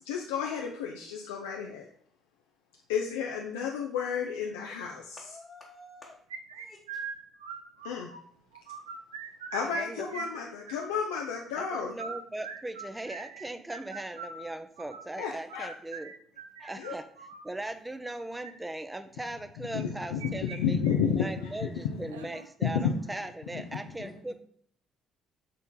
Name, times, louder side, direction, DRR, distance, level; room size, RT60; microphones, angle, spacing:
voice 1, 0.0-1.9 2.9-5.2 7.8-8.1 9.5-12.0 15.2-15.7 16.8-17.0 19.7-22.0 22.6-22.9, left 7 dB, 75° left, 1 dB, 0.5 m, -31 dB
voice 2, 5.2-6.2 6.5-6.8 24.0-24.3, left 2 dB, 25° left, -2 dB, 1.1 m, -50 dB
sound 1, 6.3-8.2 8.5-9.8 10.1-11.1 11.8-17.5 18.2-18.5 19.8-20.6 20.9-21.0 21.4-21.5 22.1-22.5, right 6 dB, 80° right, 0.5 m, -42 dB
voice 3, 9.6-10.1 11.6-16.1 16.6-20.8 21.2-24.3, right 1 dB, 15° right, 10 dB, 0.6 m, -39 dB
6.5 x 3.9 x 3.7 m, 0.64 s
figure-of-eight pair, 50°, 0 cm